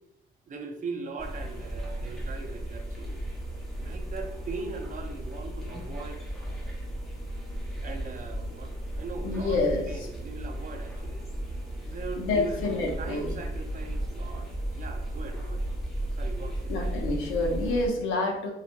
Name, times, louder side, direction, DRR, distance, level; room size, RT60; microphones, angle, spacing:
voice 1, 0.5-3.2 3.8-6.2 7.8-11.3 11.8-15.7 16.2-16.7, right 4 dB, 40° right, 5 dB, 0.4 m, -40 dB
sound 1, 1.2-17.9, right 1 dB, ahead, 0.8 m, -35 dB
voice 2, 9.2-10.1 12.2-13.3 16.7-18.5, left 2 dB, 90° left, 1 dB, 0.6 m, -28 dB
2.6 x 2.3 x 2.5 m, 0.85 s
cardioid pair, 90°, 20 cm